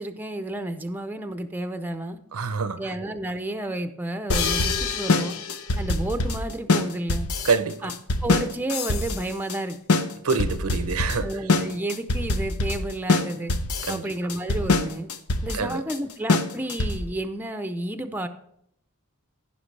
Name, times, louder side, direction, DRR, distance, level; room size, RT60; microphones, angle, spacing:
voice 1, 0.0-2.2 2.8-5.4 5.8-7.3 7.8-7.9 8.2-10.0 11.2-13.5 13.9-15.1 15.4-18.3, right 1 dB, 10° right, 0.5 m, -31 dB
voice 2, 2.3-2.8 7.4-7.9 10.2-11.3 13.9-14.0 15.5-15.8, right 5 dB, 90° right, 0.6 m, -25 dB
sound 1, 4.3-17.2, left 3 dB, 90° left, 0.8 m, -24 dB
15.0 x 5.8 x 3.3 m
head